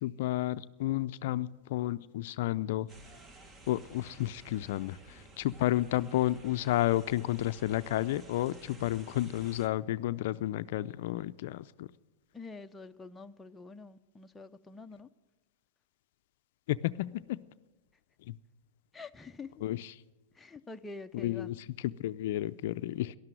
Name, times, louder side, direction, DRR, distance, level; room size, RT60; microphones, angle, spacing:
voice 1, 0.0-2.9 3.7-11.9 16.7-17.4 19.6-19.9 21.1-21.5 21.8-23.1, left 14 dB, 65° left, 0.4 m, -31 dB
sound 1, 2.9-9.7, right 2 dB, 25° right, 1.4 m, -54 dB
voice 2, 12.3-15.1 18.9-19.6 20.3-21.5, left 3 dB, 10° left, 0.6 m, -46 dB
12.5 x 11.5 x 9.1 m
hypercardioid pair, 120°, 0 cm